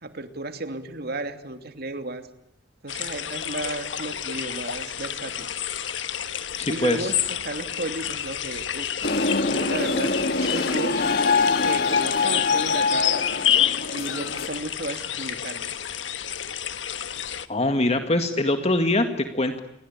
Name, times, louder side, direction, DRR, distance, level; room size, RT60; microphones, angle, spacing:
voice 1, 0.0-2.2 2.8-5.5 6.7-7.1 7.4-9.1 9.4-11.0 11.6-13.1 13.9-15.7, right 2 dB, 55° right, 8 dB, 2.9 m, -33 dB
sound 1, 2.9-17.5, left 10 dB, 85° left, 1.5 m, -29 dB
voice 2, 6.6-7.1 17.5-19.6, left 2 dB, 35° left, 7 dB, 2.0 m, -23 dB
sound 2, 9.0-14.5, left 4 dB, 55° left, 1.9 m, -24 dB
28.5 x 23.0 x 8.9 m, 0.86 s
head